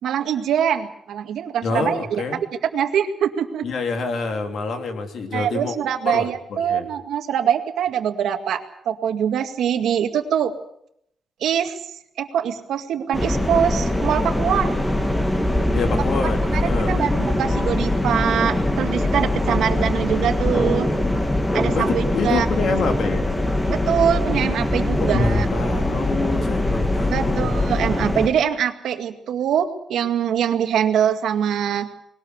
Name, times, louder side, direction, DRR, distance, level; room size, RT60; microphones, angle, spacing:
voice 1, 0.0-2.2 2.7-3.7 5.3-10.5 11.4-11.8 12.2-14.8 16.5-20.9 21.5-22.5 23.7-25.5 27.1-31.9, right 9 dB, 85° right, 7 dB, 2.0 m, -23 dB
voice 2, 1.6-2.4 3.6-5.7 6.0-6.9 15.7-17.0 21.7-23.3 25.0-27.5, left 4 dB, 60° left, 5 dB, 3.1 m, -26 dB
sound 1, 13.1-28.3, left 1 dB, 10° left, 2.1 m, -22 dB
20.5 x 19.0 x 8.0 m, 0.73 s
cardioid pair, 140°, 0 cm